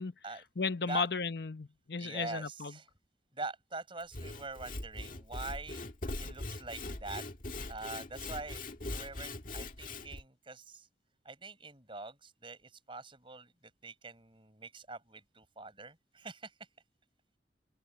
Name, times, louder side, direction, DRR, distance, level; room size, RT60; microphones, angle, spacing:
voice 1, 0.6-2.7, left 4 dB, 65° left, 0.8 m, -34 dB
voice 2, 2.0-2.9 3.3-5.9 6.2-7.2 7.7-10.9 11.2-13.5 13.8-16.5, right 3 dB, 30° right, 6.2 m, -44 dB
Sawing / Wood, 4.0-10.2, left 2 dB, 50° left, 1.8 m, -41 dB
open air
head